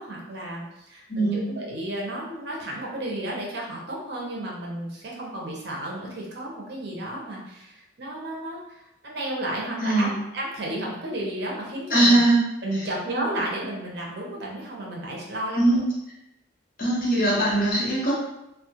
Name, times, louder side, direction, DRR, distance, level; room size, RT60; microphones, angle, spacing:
voice 1, 0.0-12.2 12.6-15.8, right 1 dB, 60° right, -3 dB, 0.6 m, -33 dB
voice 2, 1.1-1.4 9.8-10.1 11.9-12.4 15.5-15.9 16.8-18.1, right 1 dB, 45° left, -6 dB, 0.8 m, -20 dB
2.3 x 2.1 x 2.8 m, 0.88 s
head